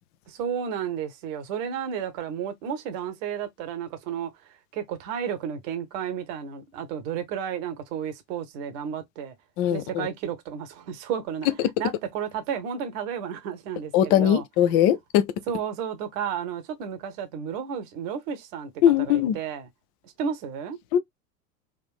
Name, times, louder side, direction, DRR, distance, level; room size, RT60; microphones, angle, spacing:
voice 1, 0.3-4.3 4.7-9.3 9.7-11.5 11.8-14.4 15.5-18.7 19.0-19.6 20.2-20.8, right 8 dB, 50° right, 1.0 m, -32 dB
voice 2, 9.6-10.1 11.6-11.7 13.9-15.3 18.8-19.4 20.9-21.0, left 10 dB, 30° left, 0.3 m, -21 dB
3.6 x 2.5 x 2.3 m
figure-of-eight pair, 85°, 48 cm